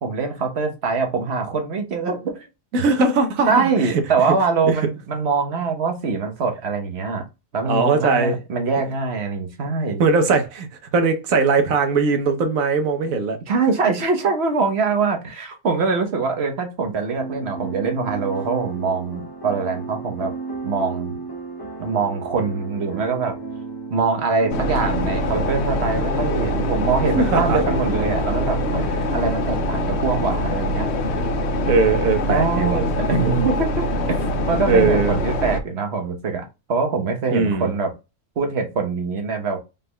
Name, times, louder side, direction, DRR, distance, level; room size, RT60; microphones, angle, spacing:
voice 1, 0.0-2.5 3.5-7.2 7.5-10.0 13.5-20.3 20.6-21.2 21.8-23.3 23.9-28.8 29.1-30.9 32.3-37.9 38.4-39.6, right 4 dB, 50° right, 1.2 m, -23 dB
voice 2, 2.7-3.7 4.6-4.7 7.7-8.4 10.0-13.4 27.2-27.6 31.7-32.8 34.7-35.2 37.3-37.7, right 4 dB, 65° right, 1.3 m, -20 dB
sound 1, 17.1-28.8, right 4 dB, 25° left, 0.5 m, -33 dB
sound 2, 24.5-35.6, left 1 dB, 60° left, 0.8 m, -23 dB
5.3 x 3.7 x 2.2 m
omnidirectional pair, 1.6 m